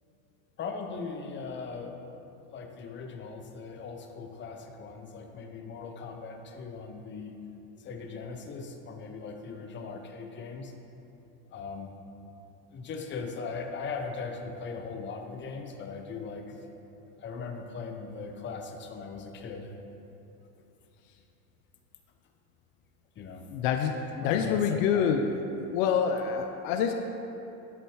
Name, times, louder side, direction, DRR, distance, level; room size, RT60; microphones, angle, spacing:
voice 1, 0.6-1.9 2.5-7.3 7.8-10.7 11.5-11.9 12.7-16.6 17.2-19.7 23.2-23.4 24.2-25.1, left 4 dB, 25° left, 4 dB, 0.7 m, -39 dB
voice 2, 23.5-25.3 25.7-26.9, left 7 dB, 60° left, 6 dB, 0.6 m, -26 dB
10.5 x 4.0 x 4.7 m, 3.0 s
hypercardioid pair, 105°, 46 cm